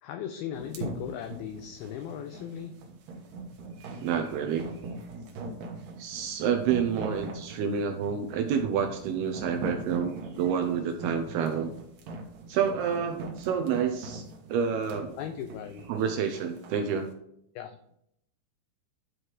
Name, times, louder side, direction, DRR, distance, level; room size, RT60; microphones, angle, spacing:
voice 1, 0.0-2.7 15.2-15.9 17.6-18.0, left 9 dB, 85° left, 8 dB, 2.1 m, -38 dB
sound 1, 0.5-16.8, right 2 dB, 60° right, 2.4 m, -40 dB
voice 2, 4.0-4.7 6.0-11.7 12.5-15.2 15.9-17.1, right 7 dB, 75° right, 6 dB, 2.5 m, -29 dB
12.5 x 4.6 x 4.9 m, 0.75 s
omnidirectional pair, 5.1 m